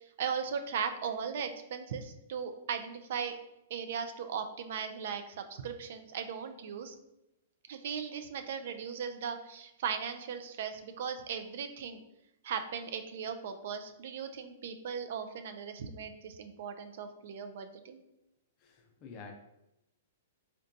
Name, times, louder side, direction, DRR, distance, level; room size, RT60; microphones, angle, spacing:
voice 1, 0.2-3.4 3.7-6.9 7.7-12.0 12.4-18.0, right 7 dB, 60° right, 8 dB, 0.3 m, -38 dB
voice 2, 18.6-19.3, left 4 dB, 35° left, 3 dB, 0.5 m, -48 dB
3.8 x 2.2 x 2.6 m, 0.88 s
hypercardioid pair, 150°, 0 cm